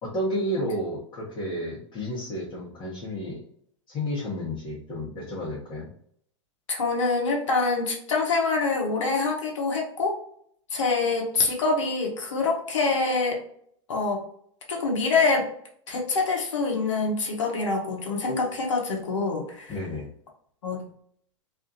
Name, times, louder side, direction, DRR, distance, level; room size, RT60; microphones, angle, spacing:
voice 1, 0.0-3.4 3.9-5.9 19.7-20.1, equal, 30° left, -6 dB, 1.0 m, -31 dB
voice 2, 6.7-10.2 10.7-13.4 13.9-14.2 14.7-15.5 15.9-19.8 20.6-20.9, left 3 dB, 70° left, 0 dB, 0.8 m, -25 dB
2.5 x 2.4 x 2.5 m, 0.64 s
figure-of-eight pair, 90°, 16 cm